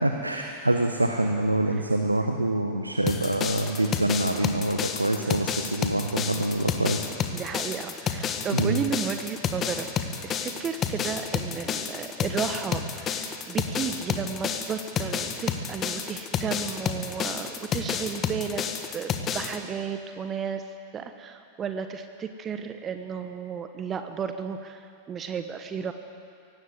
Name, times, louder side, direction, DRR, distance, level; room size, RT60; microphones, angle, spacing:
voice 1, 0.0-7.1 8.5-8.8, right 1 dB, 85° right, 4 dB, 1.3 m, -25 dB
sound 1, 3.1-19.6, left 7 dB, 30° left, 1.7 m, -30 dB
voice 2, 7.3-9.9 10.2-18.7 18.9-20.6 20.9-25.9, right 6 dB, 25° right, 8 dB, 1.1 m, -33 dB
23.5 x 18.0 x 8.0 m, 2.5 s
figure-of-eight pair, 90°, 0 cm